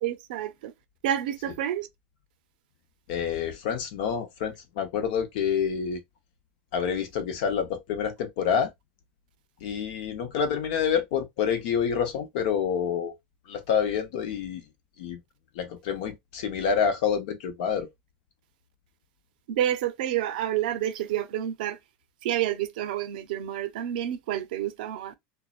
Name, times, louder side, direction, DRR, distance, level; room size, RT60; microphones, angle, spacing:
voice 1, 0.0-0.7 1.0-1.9 19.5-21.8 22.2-25.2, right 11 dB, 80° right, 0.5 m, -29 dB
voice 2, 3.1-6.0 6.7-8.7 9.6-13.1 13.5-14.6 15.0-15.2 15.5-17.9, left 7 dB, 75° left, 0.8 m, -27 dB
2.6 x 2.1 x 2.4 m
supercardioid pair, 125°, 5 cm